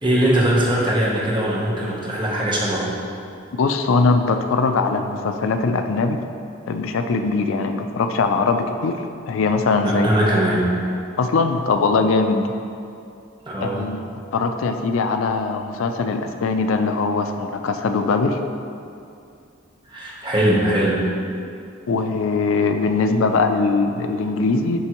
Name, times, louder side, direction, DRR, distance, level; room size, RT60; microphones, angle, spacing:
voice 1, 0.0-2.9 9.8-10.7 13.5-13.8 19.9-21.1, right 1 dB, 25° right, -4 dB, 0.8 m, -20 dB
voice 2, 3.6-6.2 6.7-9.0 9.3-10.1 11.2-12.5 13.6-14.0 14.3-18.4 21.9-24.8, left 4 dB, 75° left, 7 dB, 0.4 m, -21 dB
10.0 x 3.4 x 2.9 m, 2.5 s
head